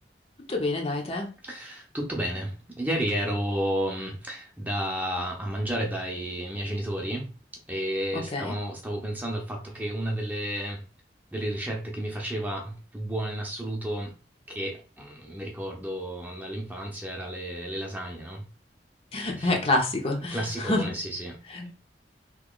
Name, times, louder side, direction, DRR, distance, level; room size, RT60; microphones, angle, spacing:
voice 1, 0.5-1.3 8.3-8.5 19.1-20.8 21.5-21.7, left 2 dB, 35° left, 0.7 m, -27 dB
voice 2, 1.4-7.3 7.7-10.8 11.3-14.1 14.5-18.5 19.4-19.5 20.3-21.4, right 1 dB, 10° right, 0.7 m, -32 dB
3.0 x 2.8 x 3.8 m
head